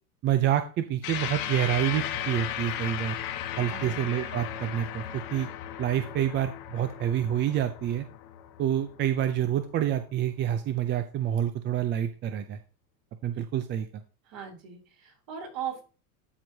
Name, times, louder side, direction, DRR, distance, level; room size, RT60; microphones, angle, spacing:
voice 1, 0.2-3.2 3.6-5.5 5.8-8.1 8.6-12.6 13.2-14.0, right 11 dB, 25° right, 9 dB, 0.5 m, -28 dB
sound 1, 1.0-9.7, left 10 dB, 50° left, 1.2 m, -36 dB
voice 2, 3.5-4.0 14.3-15.8, right 8 dB, 45° right, 0 dB, 3.3 m, -38 dB
12.5 x 4.6 x 2.7 m, 0.35 s
supercardioid pair, 125°, 45 cm